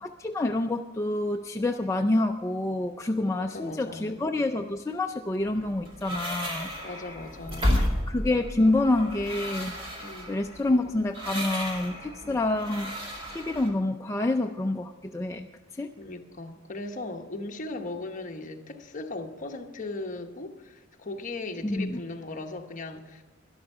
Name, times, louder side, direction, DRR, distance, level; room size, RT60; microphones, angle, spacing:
voice 1, 0.0-7.2 7.7-7.8 8.1-9.7 10.3-12.9 13.3-15.5 15.7-15.9 21.6-22.0, left 2 dB, 15° left, 3 dB, 0.4 m, -27 dB
voice 2, 3.4-4.2 6.8-7.9 10.0-10.3 12.2-12.4 16.0-23.2, left 2 dB, 40° left, 3 dB, 1.0 m, -38 dB
sound 1, 5.4-13.7, equal, 25° right, 2.2 m, -33 dB
12.5 x 11.5 x 5.5 m, 1.2 s
head